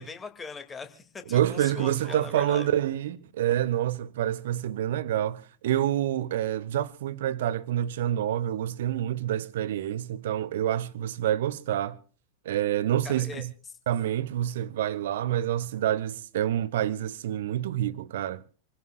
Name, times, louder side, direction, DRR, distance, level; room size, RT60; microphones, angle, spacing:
voice 1, 0.0-2.7 13.0-13.4, left 5 dB, 15° left, 2.2 m, -40 dB
voice 2, 1.3-12.0 12.4-13.5 13.9-18.4, right 11 dB, 55° right, 1.0 m, -27 dB
27.5 x 16.0 x 2.4 m
figure-of-eight pair, 90°, 0 cm